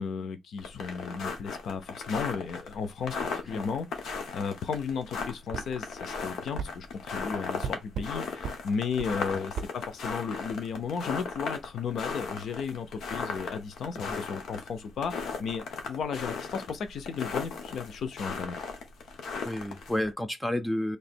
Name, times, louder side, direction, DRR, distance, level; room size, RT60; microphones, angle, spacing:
voice 1, 0.0-18.6, left 6 dB, 65° left, 0.7 m, -34 dB
sound 1, 0.6-20.1, left 4 dB, 85° left, 1.2 m, -37 dB
sound 2, 5.5-5.7 6.6-6.7 7.6-8.1 8.4-8.6 9.0-9.1 9.5-9.7, right 7 dB, 80° right, 0.4 m, -35 dB
voice 2, 19.4-21.0, left 1 dB, 5° left, 0.4 m, -31 dB
3.3 x 2.9 x 4.3 m
wide cardioid pair, 180°, 0 cm